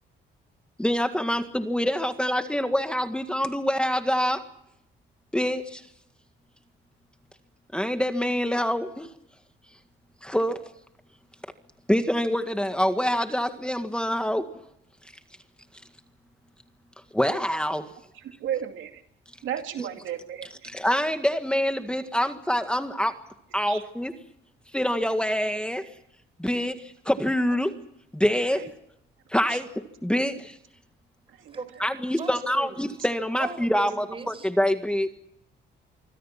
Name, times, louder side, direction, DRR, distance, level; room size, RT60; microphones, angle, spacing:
voice 1, 0.8-4.4 5.3-5.8 7.7-9.1 10.2-10.6 11.9-14.5 17.1-17.9 19.8-19.9 20.6-23.2 23.5-24.1 24.7-25.9 26.4-27.8 28.1-28.7 29.3-29.7 30.0-30.6 31.8-35.1, equal, 5° left, 7 dB, 1.9 m, -25 dB
voice 2, 18.1-19.0 19.4-20.7 23.7-23.8 28.5-28.7 29.5-29.6 31.3-31.8, right 10 dB, 80° right, 6 dB, 2.5 m, -34 dB
voice 3, 32.2-32.7 33.4-34.5, right 3 dB, 30° right, 14 dB, 4.7 m, -37 dB
25.5 x 25.0 x 6.0 m, 0.77 s
cardioid pair, 90°, 20 cm